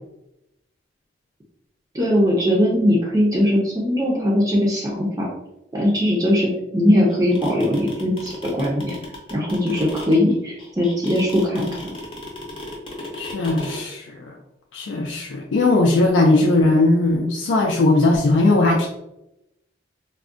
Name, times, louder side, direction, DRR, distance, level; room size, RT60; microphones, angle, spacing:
voice 1, 1.9-5.3 5.7-9.0 9.3-11.7, left 1 dB, 20° right, -3 dB, 0.4 m, -20 dB
sound 1, 7.1-13.8, left 1 dB, 30° left, 0.6 m, -35 dB
voice 2, 13.2-14.4 14.7-18.9, left 2 dB, 90° left, -1 dB, 0.4 m, -18 dB
3.5 x 2.1 x 2.4 m, 0.87 s
head